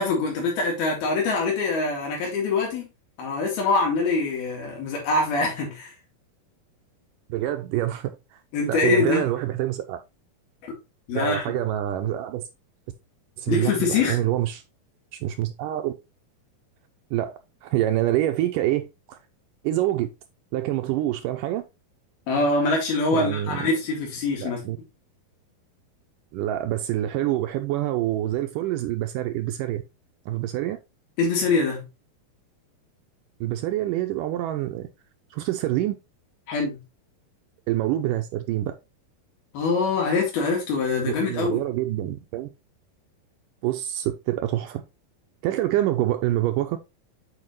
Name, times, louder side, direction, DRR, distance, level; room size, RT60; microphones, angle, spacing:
voice 1, 0.0-2.8 3.2-5.9 8.5-9.3 10.6-10.7 11.1-11.5 13.5-14.2 22.3-24.6 31.2-31.9 36.5-36.8 39.5-41.6, left 3 dB, 85° left, 4.3 m, -24 dB
voice 2, 7.3-8.4 8.7-10.0 11.1-12.4 13.4-14.6 15.2-15.9 17.1-19.2 19.6-20.1 20.5-21.6 23.1-23.7 24.4-24.8 26.3-29.8 30.3-30.8 33.4-34.9 35.3-36.0 37.7-38.7 41.1-42.5 43.6-44.8 45.4-46.8, right 13 dB, 80° right, 2.0 m, -26 dB
8.7 x 4.7 x 3.1 m
omnidirectional pair, 4.3 m